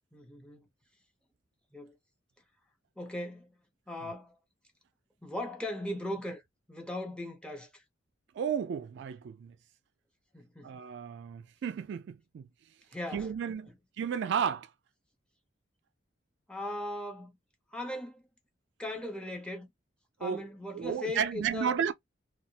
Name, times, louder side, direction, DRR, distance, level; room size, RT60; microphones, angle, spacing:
voice 1, 0.1-0.7 1.7-2.0 3.0-3.6 3.9-4.4 5.2-6.4 6.7-7.8 10.3-10.7 12.9-13.6 16.5-17.4 17.7-18.2 18.8-19.7 20.2-21.9, left 1 dB, 5° left, 0.6 m, -39 dB
voice 2, 8.4-9.5 10.6-12.5 13.1-13.7 14.0-14.7 20.2-20.5 20.7-21.9, right 7 dB, 65° right, 0.3 m, -33 dB
2.3 x 2.0 x 2.7 m
head